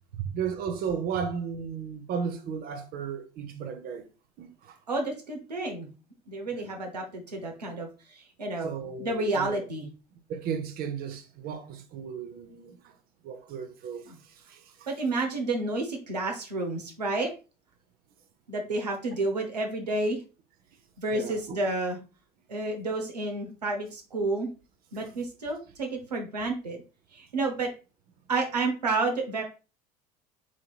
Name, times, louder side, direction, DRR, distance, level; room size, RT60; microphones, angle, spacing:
voice 1, 0.3-4.1 4.4-4.8 6.5-6.7 8.6-9.6 10.3-12.8 13.2-14.0 14.5-14.6 21.1-21.6 24.9-25.1, right 7 dB, 50° right, 0.8 m, -34 dB
voice 2, 4.9-5.9 6.3-9.9 14.1-14.2 14.9-17.3 18.5-20.2 21.0-22.0 22.5-24.5 24.9-26.8 27.1-27.7 28.3-29.4, right 2 dB, 90° right, 0.9 m, -30 dB
7.2 x 2.9 x 2.4 m
hypercardioid pair, 70°, 20 cm